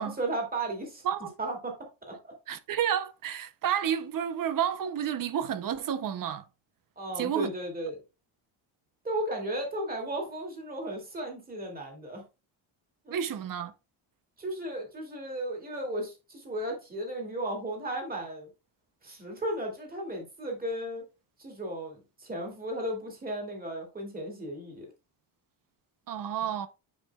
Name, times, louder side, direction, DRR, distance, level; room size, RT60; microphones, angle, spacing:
voice 1, 0.0-1.0 1.4-1.7 2.1-2.3 7.0-8.0 9.0-12.2 13.0-13.1 14.4-18.5 19.0-21.0 21.4-24.9, right 1 dB, 20° right, 2.4 m, -35 dB
voice 2, 2.5-6.5 7.2-7.5 13.1-13.7 26.1-26.7, right 9 dB, 45° right, 0.7 m, -30 dB
9.6 x 5.5 x 2.3 m
cardioid pair, 155°, 48 cm